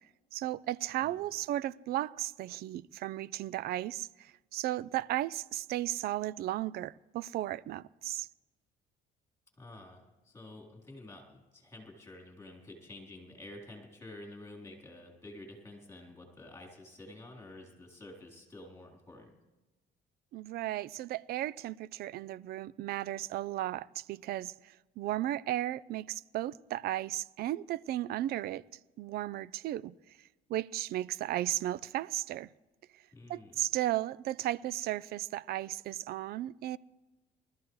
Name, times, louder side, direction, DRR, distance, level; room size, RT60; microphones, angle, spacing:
voice 1, 0.3-8.3 20.3-28.6 29.0-30.0 30.5-32.5 33.3-36.8, right 14 dB, 65° right, 0.4 m, -35 dB
voice 2, 9.6-19.3 33.1-33.6, left 2 dB, 15° left, 3.7 m, -50 dB
21.0 x 13.5 x 3.2 m
cardioid pair, 110°, 17 cm